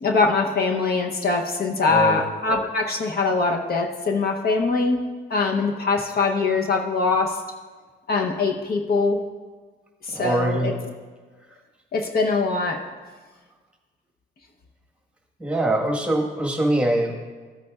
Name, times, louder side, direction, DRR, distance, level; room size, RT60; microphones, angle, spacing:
voice 1, 0.0-5.0 5.3-7.4 8.1-9.2 10.0-10.9 11.9-12.9, left 3 dB, 50° left, 2 dB, 0.8 m, -22 dB
voice 2, 10.1-10.7 15.4-17.2, right 1 dB, 5° right, 1 dB, 1.4 m, -23 dB
14.0 x 8.2 x 2.3 m, 1.4 s
cardioid pair, 90°, 20 cm